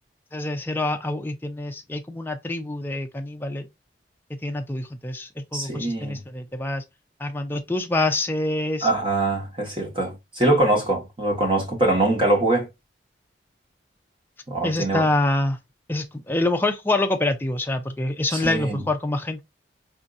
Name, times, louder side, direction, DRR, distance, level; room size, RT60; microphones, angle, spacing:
voice 1, 0.3-3.7 4.3-6.8 7.2-8.9 14.6-15.6 15.9-19.4, left 2 dB, 10° left, 0.4 m, -26 dB
voice 2, 5.5-6.2 8.8-12.7 14.5-15.1 18.3-18.8, right 2 dB, 25° right, 1.2 m, -23 dB
5.1 x 2.6 x 2.4 m
head